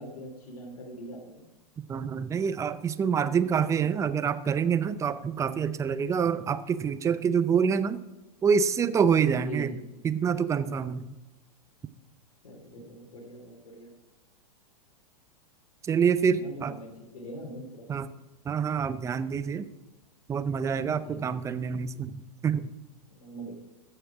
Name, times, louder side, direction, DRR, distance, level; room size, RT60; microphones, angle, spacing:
voice 1, 0.0-1.4 9.4-9.8 12.4-13.9 16.4-17.9 21.0-21.4 23.1-23.5, right 1 dB, 75° left, 0 dB, 2.8 m, -42 dB
voice 2, 1.9-8.0 8.4-9.7 10.0-11.1 15.8-16.8 17.9-18.1 18.4-19.7 20.3-22.7, right 7 dB, 15° right, 13 dB, 0.5 m, -26 dB
14.5 x 6.6 x 4.8 m, 1.1 s
hypercardioid pair, 120°, 19 cm